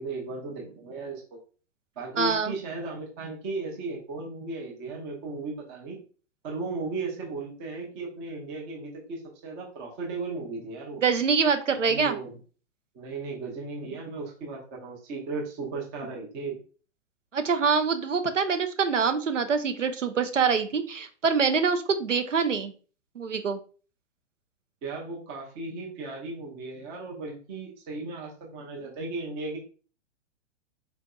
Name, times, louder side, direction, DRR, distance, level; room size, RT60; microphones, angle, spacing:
voice 1, 0.0-1.4 2.0-6.0 6.4-11.0 11.9-12.4 12.9-16.6 24.8-29.6, right 3 dB, 15° right, -1 dB, 0.4 m, -36 dB
voice 2, 2.2-2.5 11.0-12.2 17.3-22.7 23.2-23.6, right 5 dB, 85° right, 8 dB, 0.5 m, -25 dB
3.9 x 2.5 x 2.2 m, 0.39 s
figure-of-eight pair, 110°, 36 cm